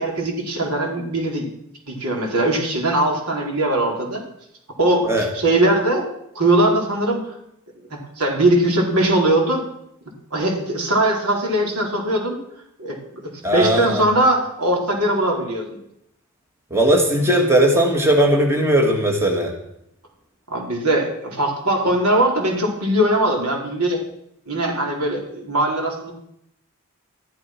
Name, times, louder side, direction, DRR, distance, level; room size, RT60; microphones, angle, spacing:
voice 1, 0.0-1.5 1.9-4.2 4.8-6.0 6.3-7.3 7.9-9.6 10.3-12.4 12.8-15.8 20.5-24.0 24.5-26.1, right 1 dB, 90° right, 0 dB, 4.4 m, -20 dB
voice 2, 13.4-14.0 16.7-19.5, right 1 dB, 10° right, 1 dB, 2.3 m, -18 dB
14.0 x 12.0 x 6.1 m, 0.76 s
head